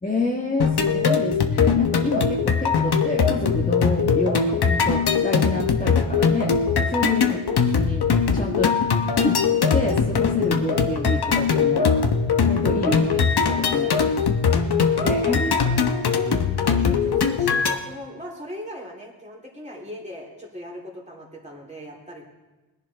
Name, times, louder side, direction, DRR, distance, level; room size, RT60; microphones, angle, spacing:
voice 1, 0.0-6.5 6.9-8.1 8.3-8.8 9.2-9.4 9.7-12.0 12.5-13.2 13.5-13.9 15.0-16.4, left 2 dB, 15° left, -2 dB, 1.4 m, -28 dB
sound 1, 0.6-17.8, left 5 dB, 50° left, 1.1 m, -21 dB
voice 2, 13.8-15.4 16.5-22.3, equal, 15° right, -3 dB, 3.5 m, -40 dB
20.5 x 11.0 x 3.4 m, 1.1 s
wide cardioid pair, 95°, 48 cm